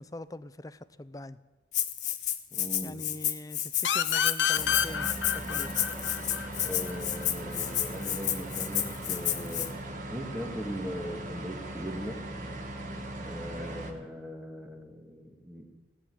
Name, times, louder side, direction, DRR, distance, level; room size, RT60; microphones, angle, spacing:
voice 1, 0.0-1.4 2.8-5.7, left 1 dB, 20° left, 15 dB, 0.5 m, -43 dB
Rattle (instrument), 1.7-9.7, left 12 dB, 40° left, 1.0 m, -31 dB
voice 2, 2.5-3.0 6.6-9.7 10.1-12.2 13.2-15.6, equal, 5° right, 2 dB, 1.8 m, -39 dB
sound 1, 3.8-7.2, left 9 dB, 80° left, 0.7 m, -29 dB
sound 2, 4.5-13.9, right 1 dB, 45° right, 1.9 m, -39 dB
17.0 x 8.3 x 9.3 m, 1.3 s
head